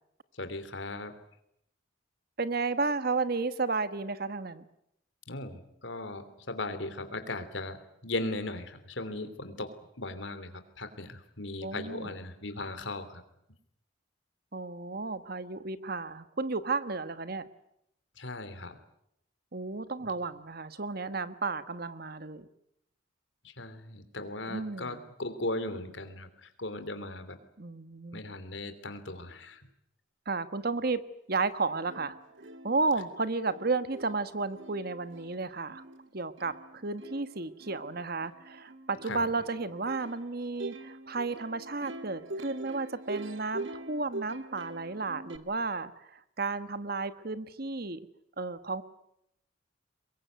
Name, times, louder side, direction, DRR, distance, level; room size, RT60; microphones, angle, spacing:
voice 1, 0.4-1.1 5.3-7.8 8.0-9.7 10.0-10.5 10.8-13.2 18.2-18.7 23.4-27.4 28.1-29.6 39.1-39.3, left 2 dB, 70° left, 10 dB, 3.1 m, -37 dB
voice 2, 2.4-4.6 11.6-12.1 14.5-17.5 19.5-22.5 24.5-25.0 27.6-28.2 30.3-31.0 31.3-32.2 32.6-35.8 36.1-48.0 48.4-48.8, right 3 dB, 50° right, 13 dB, 1.3 m, -33 dB
Plucked string instrument, 31.5-31.6 31.9-45.4, right 2 dB, 75° right, 1.8 m, -44 dB
24.0 x 21.5 x 9.3 m, 0.77 s
head